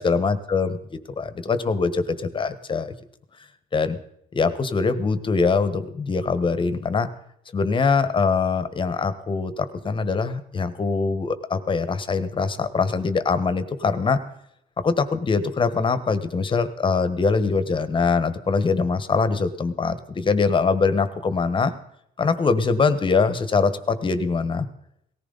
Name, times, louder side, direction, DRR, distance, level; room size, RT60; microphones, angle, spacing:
voice 1, 0.0-2.9 3.7-4.0 4.3-7.1 7.5-14.2 14.8-21.7 22.2-24.7, left 4 dB, 30° left, 12 dB, 1.3 m, -23 dB
18.5 x 14.5 x 4.1 m, 0.73 s
cardioid pair, 110°, 17 cm